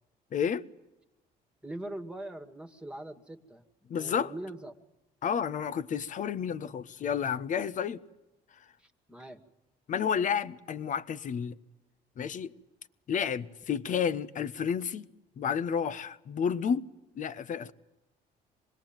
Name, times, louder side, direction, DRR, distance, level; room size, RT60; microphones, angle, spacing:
voice 1, 0.3-0.6 3.9-4.3 5.2-8.0 9.9-11.5 12.2-12.5 13.1-15.1 15.4-16.9 17.1-17.7, left 7 dB, 50° left, 1.2 m, -31 dB
voice 2, 1.6-3.6 3.9-4.7 8.8-9.4, right 1 dB, 5° right, 2.1 m, -42 dB
26.0 x 21.0 x 9.1 m
cardioid pair, 110°, 17 cm